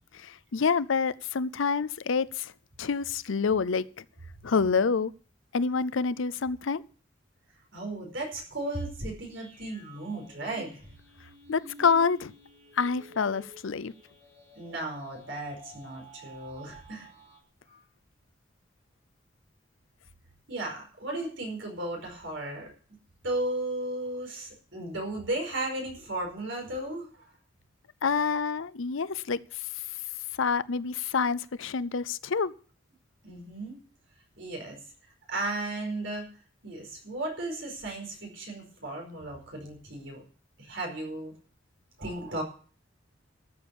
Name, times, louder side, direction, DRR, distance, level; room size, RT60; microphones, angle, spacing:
voice 1, 0.1-2.5 2.8-4.0 4.4-5.1 5.5-6.8 11.5-12.3 12.7-13.9 28.0-29.6 30.4-32.5, left 5 dB, 75° left, 0.6 m, -27 dB
voice 2, 7.7-10.9 14.5-17.1 17.7-17.8 20.5-22.7 23.2-27.1 33.2-33.8 34.4-34.8 35.3-36.3 36.6-40.2 40.6-41.3 42.0-42.4, right 2 dB, 65° right, 5.0 m, -35 dB
sound 1, 9.3-17.4, right 1 dB, 35° right, 4.7 m, -51 dB
13.5 x 7.1 x 8.3 m
head